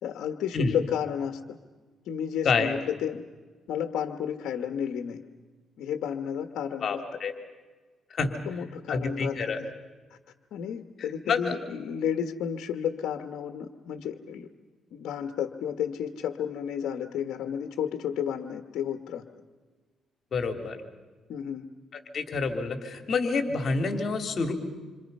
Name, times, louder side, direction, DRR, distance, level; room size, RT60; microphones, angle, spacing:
voice 1, 0.0-1.6 2.1-3.2 3.7-5.2 5.8-7.0 8.5-9.7 10.1-10.2 10.5-14.5 14.9-19.2 21.3-21.6, left 8 dB, 80° left, 7 dB, 1.5 m, -32 dB
voice 2, 6.8-7.3 8.1-8.3 8.9-9.6 11.2-11.6 20.3-20.8 21.9-24.5, left 4 dB, 50° left, 6 dB, 3.1 m, -28 dB
27.5 x 26.5 x 5.6 m, 1.3 s
cardioid pair, 90°, 0 cm